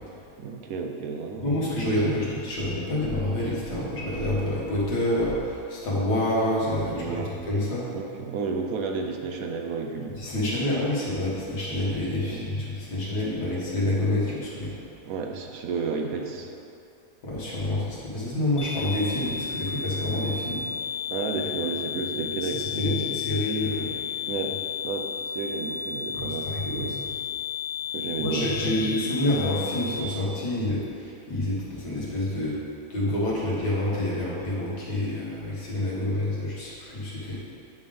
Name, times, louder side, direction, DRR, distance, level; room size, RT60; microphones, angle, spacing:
voice 1, 0.4-2.2 6.8-7.4 7.9-10.4 12.2-12.5 15.0-16.5 21.1-23.2 24.2-24.6 24.8-27.0 27.9-28.8, right 4 dB, 70° right, 2 dB, 1.0 m, -32 dB
voice 2, 1.4-7.9 10.2-14.7 17.2-20.6 22.4-23.9 26.1-27.0 28.2-32.6 32.9-37.4, left 1 dB, 80° left, -7 dB, 2.3 m, -28 dB
sound 1, 18.6-30.0, left 7 dB, 50° left, 0.6 m, -33 dB
9.5 x 3.6 x 5.4 m, 2.6 s
omnidirectional pair, 1.7 m